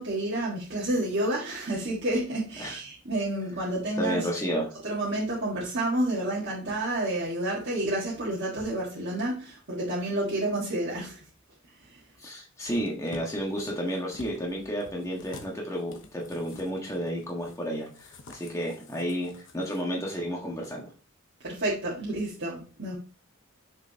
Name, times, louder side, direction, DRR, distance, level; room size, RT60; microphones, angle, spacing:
voice 1, 0.0-4.3 4.8-11.3 11.8-12.0 21.4-23.0, right 1 dB, 55° right, 1.7 m, -30 dB
voice 2, 4.0-4.7 12.2-20.9, equal, 15° left, 1.5 m, -32 dB
sound 1, 12.6-19.8 20.1-20.2, left 2 dB, 60° left, 1.1 m, -49 dB
6.7 x 5.8 x 2.8 m
head